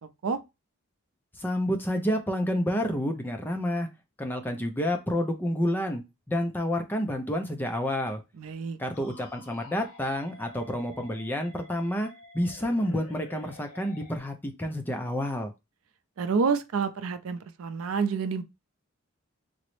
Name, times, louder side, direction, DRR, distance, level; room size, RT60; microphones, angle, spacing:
voice 1, 0.0-0.4 8.4-8.8 16.2-18.4, right 5 dB, 80° right, 0.4 m, -28 dB
voice 2, 1.4-3.9 4.2-6.0 6.3-8.2 8.8-12.1 12.3-15.5, equal, 10° left, 0.4 m, -29 dB
sound 1, 8.9-14.2, left 2 dB, 85° left, 0.7 m, -50 dB
3.8 x 2.1 x 3.1 m
head